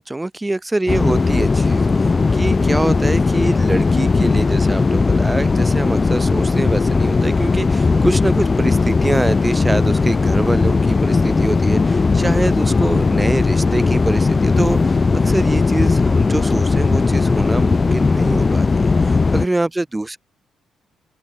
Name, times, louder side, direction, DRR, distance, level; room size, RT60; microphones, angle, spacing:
voice 1, 0.0-15.0 15.2-20.2, right 2 dB, 15° right, 4.7 m, -24 dB
sound 1, 0.9-19.4, left 4 dB, 30° left, 1.4 m, -17 dB
open air
cardioid pair, 90°, 0 cm